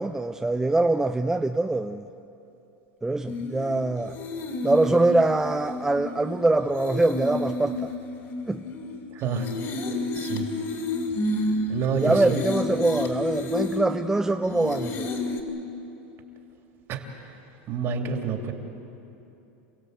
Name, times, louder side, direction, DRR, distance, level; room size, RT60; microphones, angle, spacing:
voice 1, 0.0-2.1 3.0-4.2 4.6-7.9 8.5-8.6 12.0-15.1, right 2 dB, 10° right, 6 dB, 0.6 m, -23 dB
sound 1, 3.3-15.4, left 2 dB, 45° left, 2.9 m, -31 dB
voice 2, 10.2-10.5 11.7-12.4 16.9-17.0 17.7-18.5, right 5 dB, 45° right, 4 dB, 2.8 m, -28 dB
29.0 x 16.5 x 8.2 m, 2.9 s
supercardioid pair, 115°, 6 cm